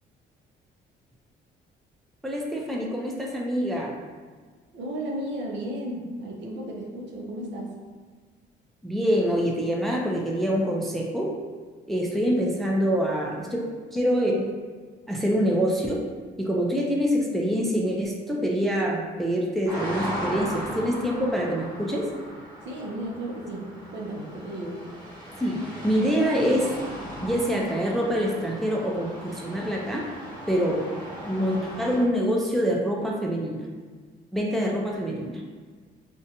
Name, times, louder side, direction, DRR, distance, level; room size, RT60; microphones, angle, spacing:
voice 1, 2.2-3.9 8.8-11.3 11.9-13.6 13.9-14.5 15.1-16.0 16.4-22.1 25.4-26.7 27.2-30.1 30.5-30.8 31.3-33.6 34.3-35.4, equal, ahead, -2 dB, 0.4 m, -25 dB
voice 2, 4.7-7.8 22.6-24.8, right 1 dB, 65° right, -2 dB, 0.6 m, -34 dB
sound 1, 19.7-32.0, equal, 20° right, 1.1 m, -38 dB
2.6 x 2.2 x 2.7 m, 1.5 s
cardioid pair, 90°, 20 cm